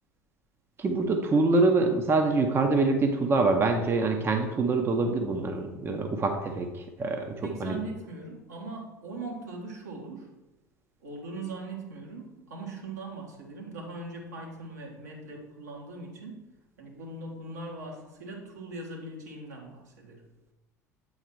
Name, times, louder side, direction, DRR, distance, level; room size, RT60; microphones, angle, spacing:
voice 1, 0.8-7.2 7.6-7.8, right 3 dB, 25° right, 4 dB, 0.7 m, -25 dB
voice 2, 7.4-10.3 11.0-16.4 16.8-20.2, right 3 dB, 75° right, -1 dB, 1.5 m, -40 dB
8.1 x 4.0 x 4.5 m, 1.0 s
figure-of-eight pair, 65°, 9 cm